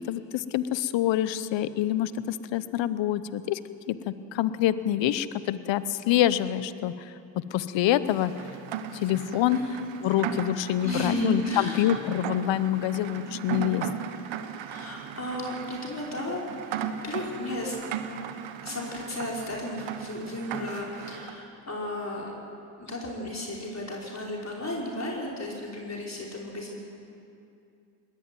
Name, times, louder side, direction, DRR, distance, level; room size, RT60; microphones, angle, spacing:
voice 1, 0.0-3.6 3.9-7.1 7.5-8.3 8.9-9.6 10.0-13.9, left 12 dB, 80° left, 15 dB, 0.9 m, -26 dB
Rain, 8.1-21.4, right 8 dB, 80° right, 1.2 m, -37 dB
voice 2, 9.5-9.9 10.8-11.9 14.7-16.5 17.0-17.9 18.6-22.3 22.8-26.8, left 1 dB, 35° left, -3 dB, 5.4 m, -34 dB
20.5 x 15.0 x 9.3 m, 2.6 s
supercardioid pair, 50°, 44 cm